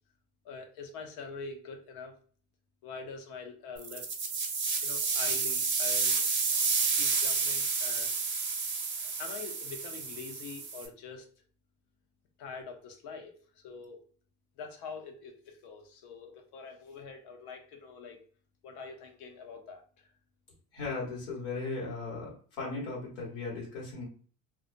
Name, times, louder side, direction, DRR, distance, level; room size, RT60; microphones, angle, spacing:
voice 1, 0.4-2.1 2.8-4.1 4.8-6.3 6.9-8.1 9.0-11.3 12.4-14.0 14.6-18.3 18.6-20.1, left 4 dB, 75° left, 3 dB, 0.8 m, -44 dB
spin out, 3.8-10.9, right 4 dB, 30° right, 0.7 m, -30 dB
voice 2, 20.7-24.0, left 3 dB, 90° left, -4 dB, 1.3 m, -37 dB
2.5 x 2.1 x 2.5 m, 0.43 s
supercardioid pair, 90°, 40 cm